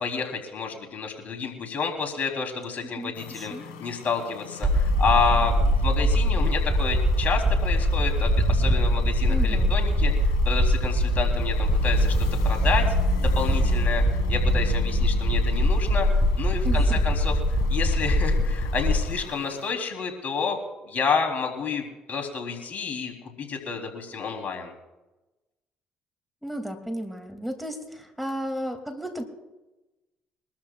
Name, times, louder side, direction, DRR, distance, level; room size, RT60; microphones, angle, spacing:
voice 1, 0.0-12.1 12.4-12.9 13.2-16.1 16.4-20.6 20.8-24.7, left 5 dB, 50° left, 3 dB, 3.4 m, -29 dB
voice 2, 3.0-3.6 9.3-9.7 16.6-17.0 26.4-29.2, equal, ahead, 4 dB, 2.5 m, -33 dB
sound 1, 3.1-19.7, left 7 dB, 85° left, 1.8 m, -43 dB
sound 2, 4.6-19.1, equal, 30° right, 4.1 m, -22 dB
24.0 x 13.0 x 2.4 m, 1.1 s
hypercardioid pair, 55°, 4 cm